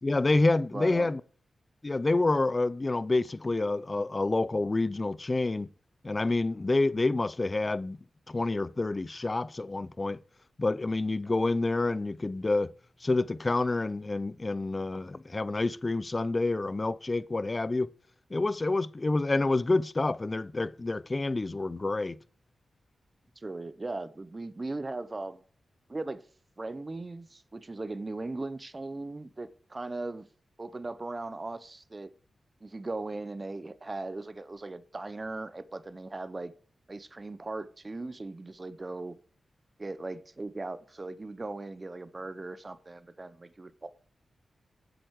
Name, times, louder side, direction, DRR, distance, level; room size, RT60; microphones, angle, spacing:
voice 1, 0.0-1.2 1.8-5.7 6.0-8.0 8.3-10.2 10.6-12.7 13.0-17.9 18.3-22.2, left 2 dB, 35° left, 0.6 m, -28 dB
voice 2, 0.7-1.1 23.4-25.4 25.9-26.2 26.6-30.3 30.6-32.1 32.6-36.5 36.9-39.1 39.8-43.9, right 2 dB, 35° right, 0.9 m, -38 dB
8.0 x 7.8 x 4.8 m
cardioid pair, 50°, 0 cm